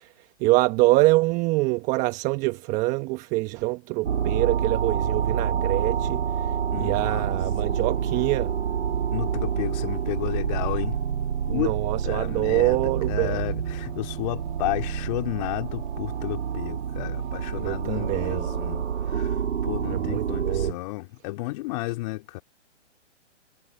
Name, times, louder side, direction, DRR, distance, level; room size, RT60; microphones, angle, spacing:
voice 1, 0.0-8.5 11.5-13.4 17.5-18.5 19.9-20.8, right 21 dB, 20° right, 1.1 m, -25 dB
sound 1, 4.0-20.7, right 8 dB, 75° right, 1.9 m, -28 dB
voice 2, 6.7-7.3 9.1-11.0 11.5-11.7 12.0-22.4, left 21 dB, 35° left, 3.6 m, -32 dB
hypercardioid pair, 145°, 36 cm